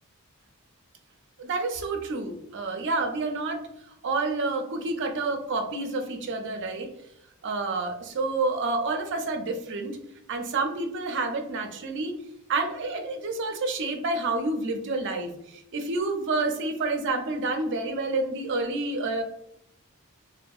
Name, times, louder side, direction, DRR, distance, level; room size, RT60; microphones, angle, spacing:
voice 1, 1.4-3.6 4.0-6.9 7.4-10.0 10.3-12.1 12.5-19.2, right 3 dB, 55° right, 5 dB, 0.4 m, -29 dB
2.7 x 2.1 x 2.3 m, 0.80 s
head